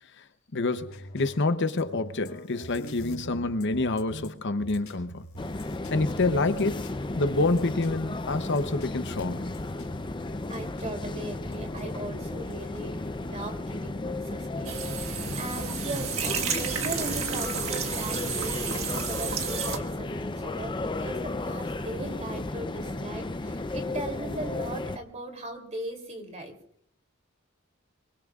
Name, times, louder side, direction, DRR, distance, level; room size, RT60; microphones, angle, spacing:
voice 1, 0.5-5.2 5.9-6.9 7.2-9.5, left 2 dB, 55° left, 0.8 m, -27 dB
sound 1, 0.8-13.3, equal, 75° left, 3.5 m, -46 dB
sound 2, 5.4-25.0, left 2 dB, 20° left, 0.6 m, -34 dB
voice 2, 10.5-26.5, right 2 dB, 35° right, 3.1 m, -38 dB
sound 3, 14.7-19.8, right 6 dB, 75° right, 1.6 m, -32 dB
24.5 x 23.0 x 2.4 m
head